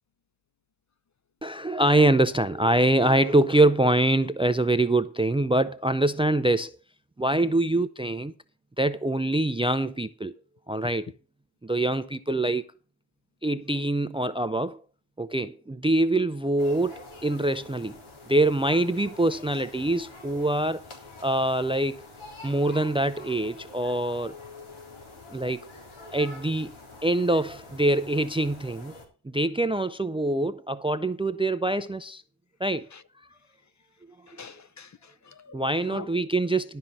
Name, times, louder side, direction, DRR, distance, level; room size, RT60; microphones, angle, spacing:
voice 1, 1.4-6.8 7.2-8.3 8.8-10.3 10.7-11.1 11.6-12.7 13.4-14.8 15.2-18.0 18.3-20.8 21.2-22.0 22.4-24.4 25.3-25.6 26.1-26.7 27.0-28.9 29.2-32.2 32.6-32.9 35.5-36.8, right 1 dB, 10° right, 0.4 m, -24 dB
sound 1, 16.6-29.1, left 2 dB, 85° left, 3.9 m, -46 dB
voice 2, 34.3-36.1, left 6 dB, 35° left, 0.7 m, -45 dB
12.0 x 5.5 x 7.6 m
wide cardioid pair, 100°, 48 cm